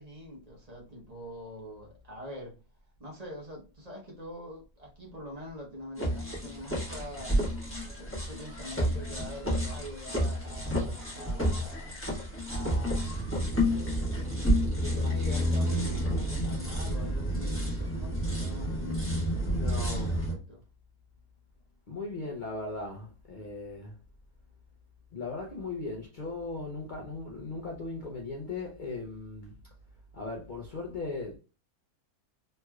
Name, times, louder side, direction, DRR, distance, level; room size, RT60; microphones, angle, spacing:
voice 1, 0.0-2.5 3.0-7.4 8.0-12.0 12.4-13.1 14.7-20.6, equal, 30° right, 0.9 m, -45 dB
sound 1, 6.0-20.3, equal, 10° left, 1.0 m, -30 dB
voice 2, 19.5-20.4 21.9-23.9 25.1-29.5 30.1-31.4, left 3 dB, 60° left, 0.5 m, -38 dB
3.2 x 3.0 x 2.3 m
omnidirectional pair, 1.6 m